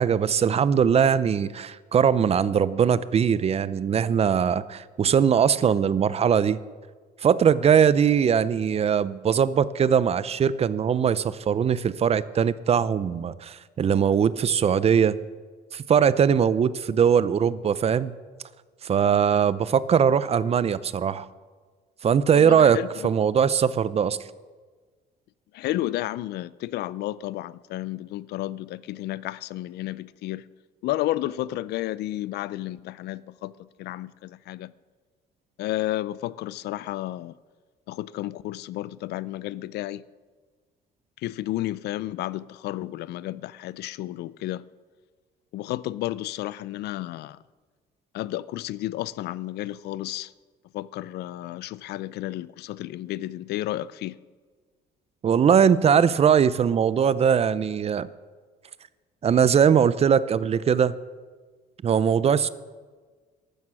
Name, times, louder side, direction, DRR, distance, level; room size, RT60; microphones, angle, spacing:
voice 1, 0.0-6.6 7.2-15.1 15.7-18.1 18.8-21.3 22.0-22.8 23.0-24.2 55.2-58.1 59.2-60.9 61.8-62.5, right 7 dB, 35° right, 0.6 m, -21 dB
voice 2, 22.3-23.1 25.5-30.4 30.8-34.7 35.6-37.3 37.9-40.0 41.2-44.6 45.5-47.4 48.1-50.3 50.7-54.2, left 15 dB, 75° left, 0.5 m, -32 dB
14.5 x 12.0 x 6.2 m
cardioid pair, 110°, 17 cm